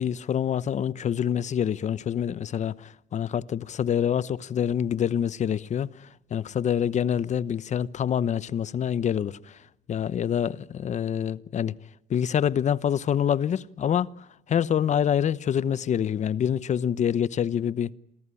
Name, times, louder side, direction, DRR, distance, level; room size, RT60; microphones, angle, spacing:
voice 1, 0.0-11.8 12.1-17.9, left 9 dB, 45° left, 0.9 m, -26 dB
27.0 x 19.5 x 9.9 m
cardioid pair, 110°, 17 cm